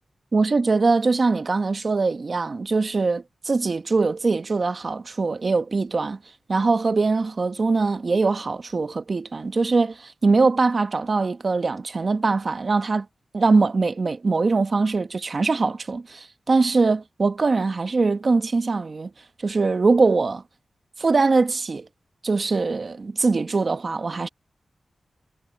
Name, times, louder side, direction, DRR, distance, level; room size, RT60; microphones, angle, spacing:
voice 1, 0.3-6.2 6.5-13.1 13.3-19.1 19.4-20.4 21.0-21.9 22.2-24.3, right 3 dB, 50° right, 1.2 m, -22 dB
wide cardioid pair, 75°, 0 cm